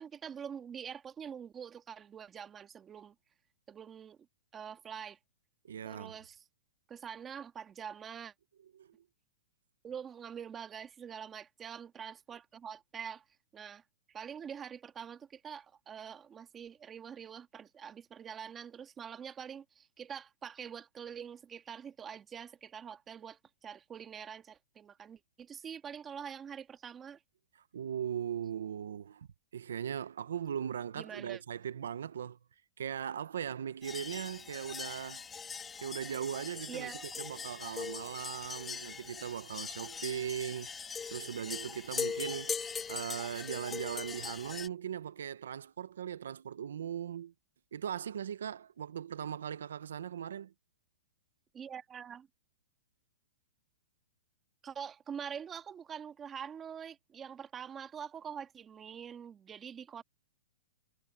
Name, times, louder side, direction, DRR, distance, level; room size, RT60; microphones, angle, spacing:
voice 1, 0.0-3.1 3.7-4.2 4.5-5.2 5.8-6.4 6.9-8.3 9.8-13.2 13.5-13.8 14.1-27.2 31.0-31.4 36.7-37.2 51.5-52.3 54.6-60.0, right 8 dB, 15° right, 1.6 m, -45 dB
voice 2, 5.6-6.2 8.7-8.9 27.7-29.3 29.5-32.4 32.8-35.2 35.8-42.6 42.9-47.3 47.7-50.5, right 8 dB, 85° right, 0.8 m, -39 dB
sound 1, 33.8-44.7, left 6 dB, 15° left, 2.6 m, -41 dB
hypercardioid pair, 150°, 0 cm